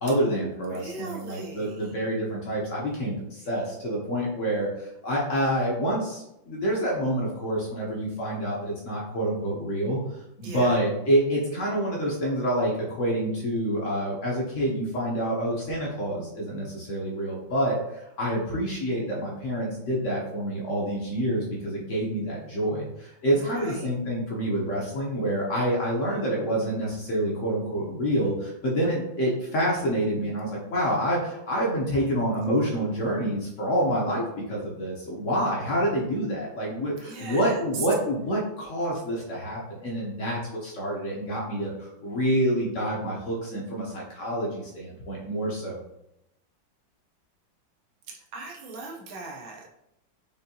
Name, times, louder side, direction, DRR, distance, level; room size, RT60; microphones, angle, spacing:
voice 1, 0.0-10.0 10.4-45.8, equal, 55° left, -3 dB, 0.9 m, -27 dB
voice 2, 0.7-1.9 10.4-10.7 23.3-23.9 37.0-37.9 48.3-49.7, right 3 dB, 85° right, -1 dB, 1.6 m, -39 dB
5.1 x 2.7 x 2.7 m, 0.85 s
omnidirectional pair, 2.1 m